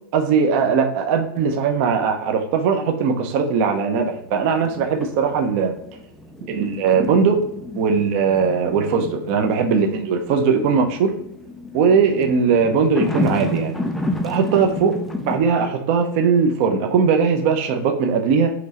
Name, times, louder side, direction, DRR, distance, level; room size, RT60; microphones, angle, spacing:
voice 1, 0.1-5.7 6.5-7.5 7.7-11.1 11.7-13.8 14.2-18.5, right 5 dB, 35° right, 4 dB, 0.7 m, -19 dB
sound 1, 4.0-15.4, left 2 dB, ahead, 0.3 m, -31 dB
5.9 x 3.2 x 2.9 m, 0.77 s
hypercardioid pair, 160°, 12 cm